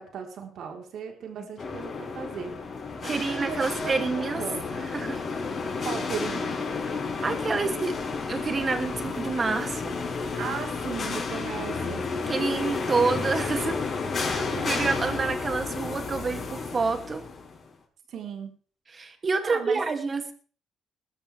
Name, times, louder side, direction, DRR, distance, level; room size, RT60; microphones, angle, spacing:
voice 1, 0.0-2.5 3.0-4.8 5.8-6.6 10.4-12.1 14.5-14.7 18.1-18.5 19.4-19.8, right 6 dB, 70° right, 2 dB, 4.0 m, -36 dB
sound 1, 1.6-17.6, left 4 dB, 45° left, 5.8 m, -31 dB
voice 2, 3.0-4.4 4.8-5.2 7.2-7.9 8.3-9.9 12.3-13.8 14.1-17.2 18.9-20.3, right 4 dB, 35° right, 6 dB, 2.5 m, -28 dB
21.0 x 12.5 x 3.5 m, 0.42 s
cardioid pair, 90°, 0 cm